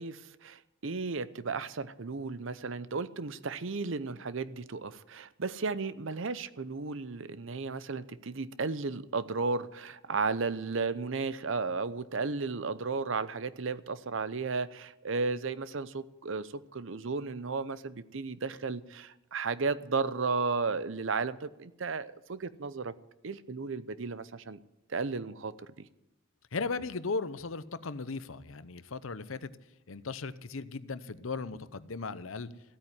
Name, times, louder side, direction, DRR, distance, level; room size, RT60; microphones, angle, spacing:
voice 1, 0.0-22.9 23.2-24.6 24.9-25.9, right 4 dB, 70° right, 0.8 m, -34 dB
voice 2, 26.5-29.5 29.9-32.5, left 4 dB, 85° left, 0.8 m, -37 dB
15.5 x 8.8 x 9.8 m
head